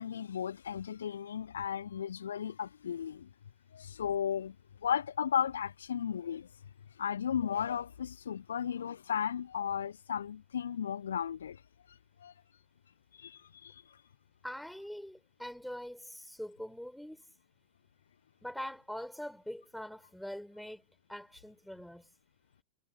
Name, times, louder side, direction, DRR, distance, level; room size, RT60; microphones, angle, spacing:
voice 1, 0.0-3.3 3.7-4.5 4.8-6.5 7.0-11.6 12.2-12.3 13.2-13.8, left 8 dB, 65° left, 1.4 m, -35 dB
voice 2, 14.4-17.2 18.4-22.1, equal, ahead, 5.5 m, -43 dB
figure-of-eight pair, 90°, 0 cm